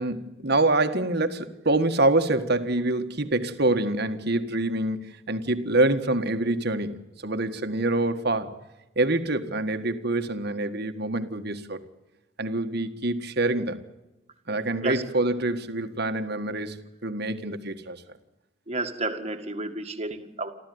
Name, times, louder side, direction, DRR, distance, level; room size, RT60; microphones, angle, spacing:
voice 1, 0.0-8.5 8.9-11.8 12.4-13.8 14.5-18.0, right 2 dB, 50° right, 1.7 m, -26 dB
voice 2, 18.7-20.5, right 2 dB, 30° right, 1.9 m, -31 dB
29.0 x 13.0 x 9.5 m
head